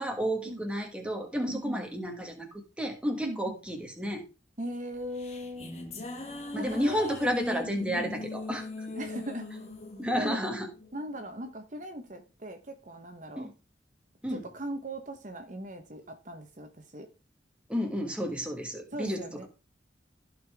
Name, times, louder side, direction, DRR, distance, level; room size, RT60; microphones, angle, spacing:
voice 1, 0.0-2.5 2.8-4.2 6.5-8.7 10.0-10.7 13.4-13.5 14.2-14.4 17.7-19.5, equal, 5° right, 1.6 m, -31 dB
voice 2, 1.4-1.8 3.2-3.6 4.6-5.8 6.5-7.2 7.9-8.1 8.9-9.7 10.2-10.5 10.9-13.5 14.3-17.1 18.9-19.5, right 1 dB, 45° right, 1.1 m, -39 dB
sound 1, 4.9-11.5, left 2 dB, 35° left, 1.7 m, -40 dB
15.0 x 5.2 x 3.6 m
head